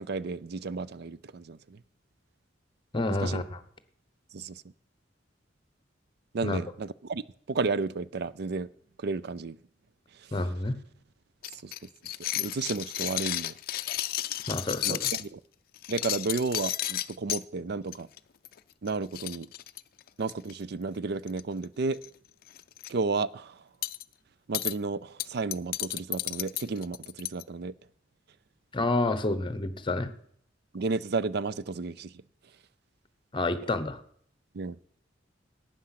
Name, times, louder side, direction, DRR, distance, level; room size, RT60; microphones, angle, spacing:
voice 1, 0.0-1.8 3.1-3.4 4.3-4.6 6.3-7.2 7.5-8.7 9.0-9.6 11.5-11.7 12.3-13.5 14.8-15.4 15.9-18.1 18.8-19.5 20.2-22.0 22.9-23.6 24.5-27.7 30.7-32.1 34.5-34.8, right 4 dB, 60° right, 18 dB, 0.5 m, -32 dB
voice 2, 2.9-3.6 6.4-6.6 10.3-10.8 14.5-15.1 28.7-30.1 33.3-34.0, left 2 dB, 25° left, 13 dB, 1.0 m, -29 dB
sound 1, 11.4-15.3 15.8-17.4 17.9-18.2 18.4-18.6 18.9-19.0 19.1-20.5 21.3-21.6 21.9-22.1 22.5-22.9 23.8-24.0 24.5-24.7 25.2-27.4, left 14 dB, 50° left, 0.4 m, -32 dB
12.0 x 8.7 x 5.8 m, 0.63 s
head